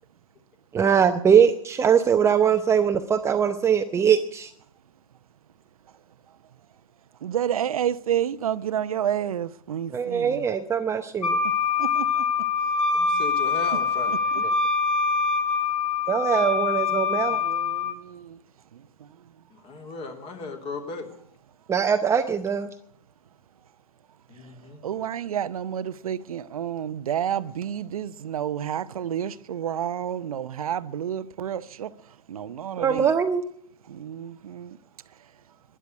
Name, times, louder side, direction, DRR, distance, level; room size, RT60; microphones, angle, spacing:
voice 1, 0.7-4.5 9.9-11.4 14.4-14.5 16.1-17.4 21.7-22.7 32.8-33.4, right 7 dB, 15° right, 0.7 m, -21 dB
voice 2, 7.2-10.4 11.8-12.1 17.4-18.4 18.7-18.8 24.8-31.9 32.3-33.1 33.9-34.8, right 9 dB, 80° right, 0.8 m, -30 dB
Wind instrument woodwind instrument, 11.2-18.0, left 5 dB, 80° left, 2.4 m, -24 dB
voice 3, 12.9-14.2 19.5-21.1 24.3-24.8, left 3 dB, 30° left, 3.0 m, -36 dB
12.0 x 10.5 x 9.5 m
hypercardioid pair, 125°, 18 cm